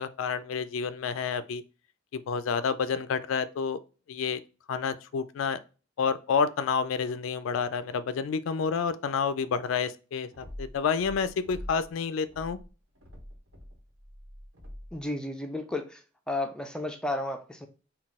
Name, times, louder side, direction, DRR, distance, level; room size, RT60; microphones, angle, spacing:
voice 1, 0.0-1.6 2.1-3.8 4.1-4.4 4.7-5.6 6.0-12.6, left 6 dB, 80° left, 0.3 m, -29 dB
sound 1, 10.3-11.9 12.2-15.0, equal, 80° right, 1.3 m, -45 dB
voice 2, 14.9-16.0 16.3-17.7, left 2 dB, 5° left, 0.4 m, -33 dB
3.9 x 2.3 x 3.5 m
head